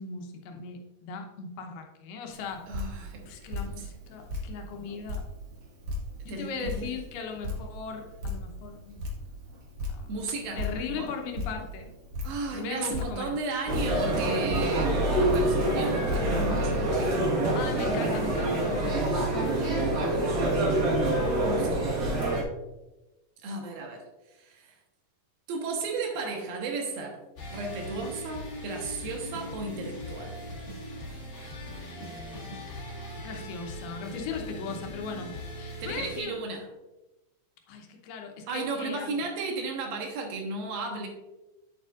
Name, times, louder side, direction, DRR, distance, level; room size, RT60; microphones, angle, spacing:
voice 1, 0.0-2.7 3.3-5.2 6.2-9.0 9.9-10.1 10.6-11.9 12.5-13.4 17.6-19.0 19.6-19.8 20.5-20.8 33.2-36.4 37.7-39.2, left 5 dB, 80° left, 3 dB, 2.9 m, -38 dB
Drip, 2.3-16.8, left 2 dB, 60° right, 1.2 m, -38 dB
voice 2, 2.7-3.3 6.3-6.9 10.1-10.6 10.9-11.1 12.2-17.3 17.9-18.2 19.9-20.2 21.4-21.7 23.4-24.0 24.4-24.7 25.5-27.2 27.5-30.5 35.8-36.7 38.5-41.1, right 3 dB, 75° right, 2 dB, 2.9 m, -34 dB
sound 1, 13.7-22.4, right 1 dB, 90° right, 0.9 m, -26 dB
Sad Metal Solo, 27.4-36.2, equal, 35° left, 1.9 m, -40 dB
9.4 x 7.5 x 2.5 m, 1.0 s
omnidirectional pair, 4.5 m